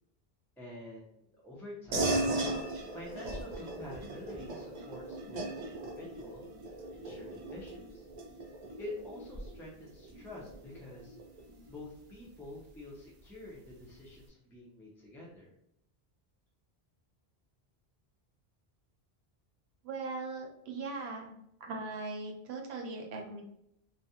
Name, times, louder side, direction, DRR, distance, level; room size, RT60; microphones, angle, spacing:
voice 1, 0.6-2.2 2.9-6.4 6.9-8.1 8.8-11.2 11.7-15.5, left 1 dB, 5° left, -5 dB, 0.4 m, -47 dB
sound 1, 1.9-11.8, right 2 dB, 55° right, 0.5 m, -38 dB
voice 2, 19.8-21.3 21.6-23.4, right 3 dB, 80° right, 2 dB, 0.9 m, -39 dB
2.3 x 2.2 x 2.7 m, 0.78 s
omnidirectional pair, 1.1 m